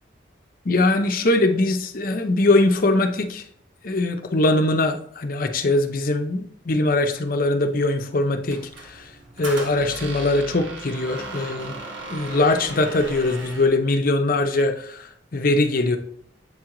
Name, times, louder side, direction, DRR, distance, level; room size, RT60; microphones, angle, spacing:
voice 1, 0.6-3.4 3.8-9.1 9.4-11.8 12.1-16.0, left 2 dB, 45° left, 0.6 m, -21 dB
Squeak, 8.5-13.8, right 2 dB, 75° right, 1.4 m, -37 dB
8.0 x 4.5 x 3.8 m
head